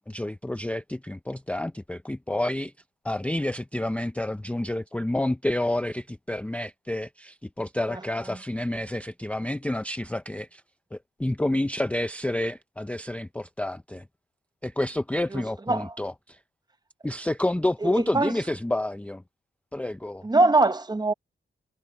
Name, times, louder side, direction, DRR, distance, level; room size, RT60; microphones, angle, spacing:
voice 1, 0.1-2.7 3.0-10.6 10.9-14.0 14.6-16.4 17.0-19.2 19.7-20.3, left 1 dB, 5° left, 0.4 m, -29 dB
voice 2, 15.3-15.9 17.8-18.3 20.2-21.1, right 2 dB, 20° right, 0.8 m, -23 dB
wide cardioid pair, 125°, 21 cm